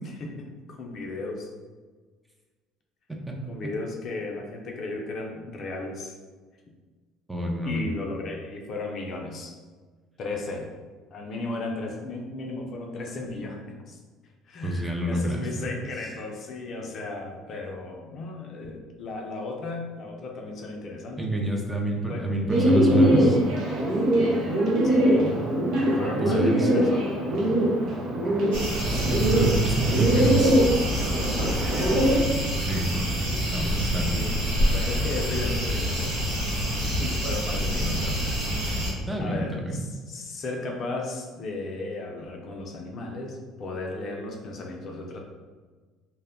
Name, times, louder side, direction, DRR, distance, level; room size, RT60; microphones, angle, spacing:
voice 1, 0.0-1.5 3.5-6.1 7.6-9.5 10.2-10.7 11.1-14.0 14.4-21.2 22.1-22.3 24.8-25.4 25.8-27.1 31.4-31.9 34.0-34.4 34.7-36.4 36.8-45.2, left 2 dB, 55° left, 1 dB, 0.4 m, -35 dB
voice 2, 7.3-7.8 14.6-15.7 21.2-23.4 25.2-25.4 26.0-26.7 28.8-30.5 32.7-33.2 33.5-34.2 39.1-39.8, right 2 dB, 10° right, 0 dB, 0.5 m, -27 dB
Bird, 22.5-32.2, equal, 60° right, 0.7 m, -22 dB
sound 1, 28.5-38.9, equal, 85° right, 0.8 m, -27 dB
2.1 x 2.0 x 3.6 m, 1.4 s
supercardioid pair, 75°, 0 cm